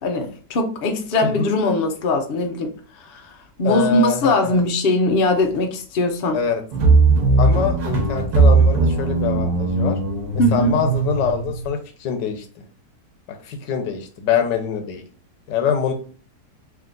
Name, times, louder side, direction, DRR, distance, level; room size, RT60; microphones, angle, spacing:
voice 1, 0.0-2.7 3.1-3.2 3.6-6.4 10.4-10.7, left 1 dB, 65° left, 4 dB, 0.5 m, -20 dB
voice 2, 3.6-4.6 6.3-6.6 7.4-10.0 10.5-12.5 13.4-15.0 15.5-15.9, left 7 dB, 85° left, 5 dB, 1.4 m, -24 dB
sound 1, 6.7-11.7, right 3 dB, 65° right, 1.5 m, -18 dB
3.6 x 2.8 x 3.8 m, 0.40 s
omnidirectional pair, 1.9 m